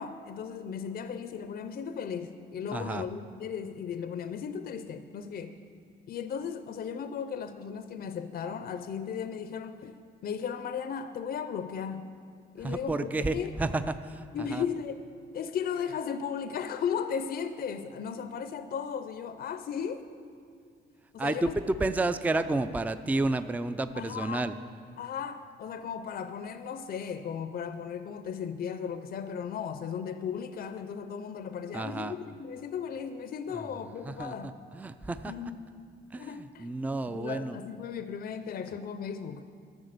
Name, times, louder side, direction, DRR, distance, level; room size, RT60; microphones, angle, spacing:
voice 1, 0.0-5.6 6.1-9.9 10.2-12.1 12.5-13.5 14.3-15.0 15.3-20.1 21.1-21.5 23.9-24.4 25.0-34.5 35.3-35.6 36.2-36.7 37.1-39.4, left 7 dB, 50° left, 10 dB, 0.5 m, -36 dB
voice 2, 2.7-3.1 12.6-14.7 21.2-24.6 31.7-32.2 33.5-35.5 36.1-37.6, right 2 dB, 10° right, 12 dB, 0.4 m, -31 dB
12.0 x 7.2 x 6.7 m, 2.2 s
cardioid pair, 90°, 20 cm